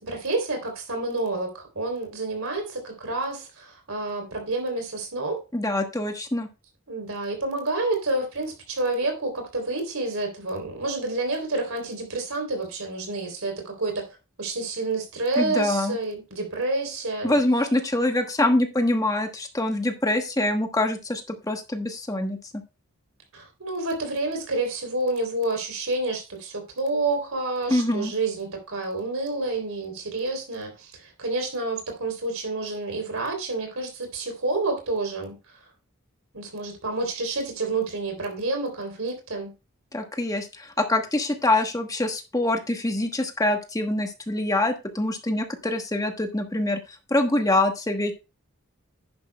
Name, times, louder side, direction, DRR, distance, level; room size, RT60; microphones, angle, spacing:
voice 1, 0.0-5.4 6.9-14.1 14.4-17.4 23.3-35.4 36.3-39.5, right 2 dB, 75° right, 3.5 m, -29 dB
voice 2, 5.5-6.5 15.4-16.0 17.2-22.6 27.7-28.1 39.9-48.1, left 1 dB, 15° left, 1.2 m, -25 dB
10.5 x 10.5 x 2.3 m
head